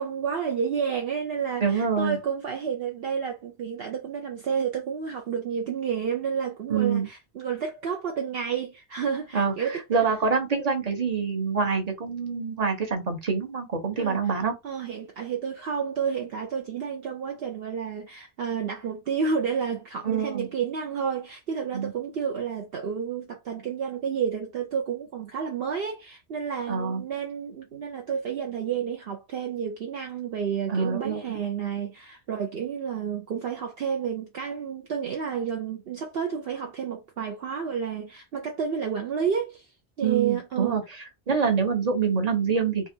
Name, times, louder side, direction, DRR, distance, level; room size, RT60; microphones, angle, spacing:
voice 1, 0.0-10.1 14.0-14.2 14.6-39.7 40.0-40.8, right 7 dB, 60° right, 0.9 m, -30 dB
voice 2, 1.6-2.2 6.7-7.1 9.3-14.6 20.0-20.5 21.7-21.9 26.7-27.0 30.7-31.2 40.0-40.8 41.3-42.9, right 5 dB, 35° right, 1.1 m, -26 dB
3.5 x 2.4 x 4.4 m
omnidirectional pair, 1.1 m